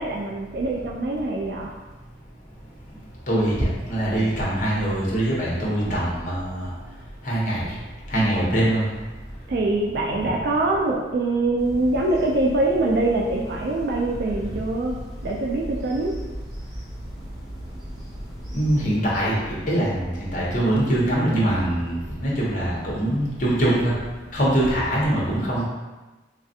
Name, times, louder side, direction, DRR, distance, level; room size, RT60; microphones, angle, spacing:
voice 1, 0.0-1.7 5.9-6.0 9.5-14.9 15.2-16.1, right 2 dB, 60° right, -2 dB, 0.3 m, -24 dB
voice 2, 3.3-6.7 7.2-7.6 8.1-8.9 10.1-10.3 18.5-23.9 24.3-25.6, right 1 dB, 45° left, -5 dB, 0.9 m, -23 dB
sound 1, 11.6-18.9, equal, 80° right, 1.0 m, -37 dB
3.3 x 2.4 x 2.6 m, 1.2 s
head